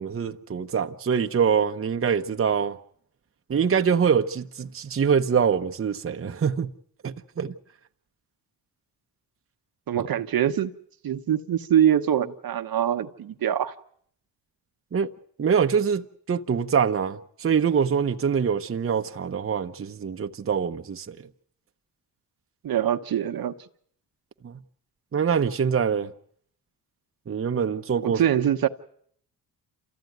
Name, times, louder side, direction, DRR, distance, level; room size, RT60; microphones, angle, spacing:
voice 1, 0.0-2.8 3.5-6.7 7.0-7.5 10.0-10.1 14.9-15.1 15.4-21.2 24.4-24.6 25.1-26.1 27.3-28.2, right 7 dB, 35° right, 1.0 m, -24 dB
voice 2, 9.9-10.7 11.0-13.7 22.6-23.5 28.0-28.7, right 10 dB, 60° right, 1.2 m, -23 dB
27.5 x 14.5 x 9.3 m
cardioid pair, 80°, 40 cm